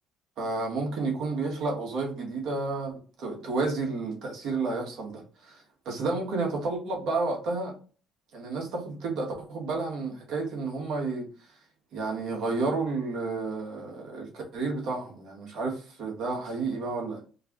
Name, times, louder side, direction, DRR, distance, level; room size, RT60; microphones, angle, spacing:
voice 1, 0.4-2.9 3.2-7.8 8.3-11.3 11.9-17.2, right 3 dB, 70° right, 1.5 m, -31 dB
4.5 x 2.4 x 3.0 m
supercardioid pair, 85°, 0 cm